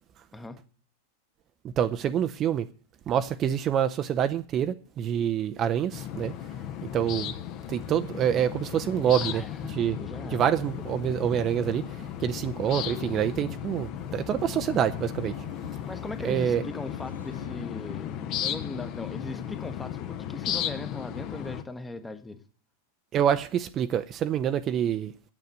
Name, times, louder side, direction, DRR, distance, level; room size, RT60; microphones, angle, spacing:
voice 1, 0.3-0.6 9.1-10.4 15.9-22.4, left 2 dB, 10° left, 1.0 m, -39 dB
voice 2, 1.6-2.7 3.1-6.3 6.9-7.3 7.7-9.4 9.7-10.0 10.3-15.4 16.2-16.6 23.1-25.1, right 9 dB, 30° right, 0.6 m, -26 dB
sound 1, 5.9-21.6, left 10 dB, 40° left, 0.9 m, -35 dB
sound 2, 7.1-17.6, equal, 90° right, 1.5 m, -49 dB
9.1 x 7.8 x 9.4 m
figure-of-eight pair, 90°, 0 cm